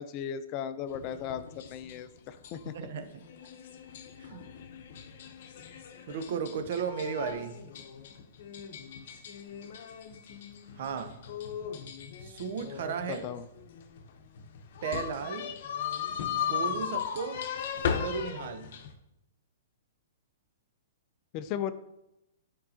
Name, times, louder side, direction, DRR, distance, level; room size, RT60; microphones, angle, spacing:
voice 1, 0.0-2.7 13.1-13.4 21.3-21.7, left 9 dB, 35° left, 0.4 m, -36 dB
sound 1, 0.9-18.9, left 7 dB, 60° left, 0.8 m, -38 dB
voice 2, 2.6-3.2 4.2-4.5 6.1-7.6 10.8-11.2 12.2-13.3 14.8-15.5 16.3-17.5 18.0-18.7, right 6 dB, 60° right, 0.7 m, -35 dB
8.7 x 4.6 x 2.8 m
hypercardioid pair, 135°, 0 cm